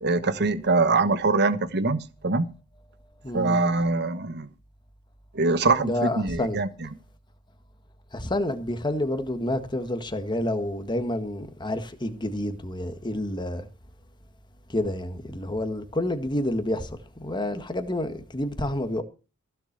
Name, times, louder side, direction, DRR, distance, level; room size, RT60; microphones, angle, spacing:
voice 1, 0.0-2.5 3.3-4.5 5.3-6.7, right 3 dB, 50° right, 1.2 m, -23 dB
voice 2, 3.2-3.6 5.8-6.6 8.1-13.7 14.7-19.0, left 1 dB, 20° left, 1.6 m, -29 dB
15.5 x 7.3 x 6.7 m
head